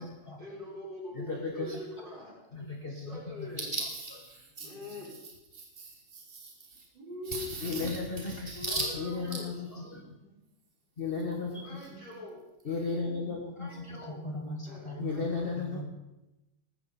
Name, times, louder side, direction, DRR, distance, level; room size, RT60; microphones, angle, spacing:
voice 1, 0.4-2.3 2.9-3.8 4.6-5.1 6.9-7.5 8.7-9.4 9.8-10.4 11.6-12.4 14.7-15.7, left 1 dB, 60° right, -6 dB, 5.6 m, -44 dB
voice 2, 1.1-1.8 2.5-4.7 5.5-6.8 7.2-10.2 11.0-11.9 12.6-14.0 15.0-15.8, left 2 dB, 30° left, 0 dB, 1.4 m, -35 dB
voice 3, 13.6-15.8, equal, 15° left, 0 dB, 1.9 m, -41 dB
19.5 x 9.9 x 4.3 m, 0.99 s
omnidirectional pair, 2.3 m